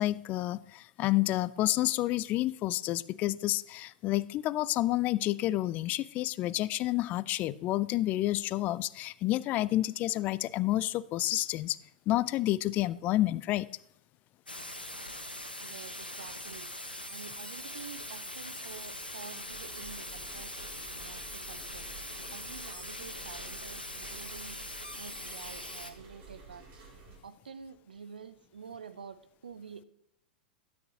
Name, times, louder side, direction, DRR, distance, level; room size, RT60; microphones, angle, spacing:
voice 1, 0.0-11.8 12.1-13.7, left 16 dB, 35° left, 20 dB, 0.3 m, -29 dB
sound 1, 14.5-25.9, left 1 dB, 90° left, 1.0 m, -42 dB
voice 2, 15.6-16.7 17.1-21.9 22.3-24.6 25.0-26.8 27.2-29.8, right 6 dB, 75° right, 13 dB, 0.7 m, -48 dB
sound 2, 19.4-27.2, right 4 dB, 40° right, 3.1 m, -52 dB
12.5 x 9.3 x 2.8 m, 0.78 s
figure-of-eight pair, 95°, 5 cm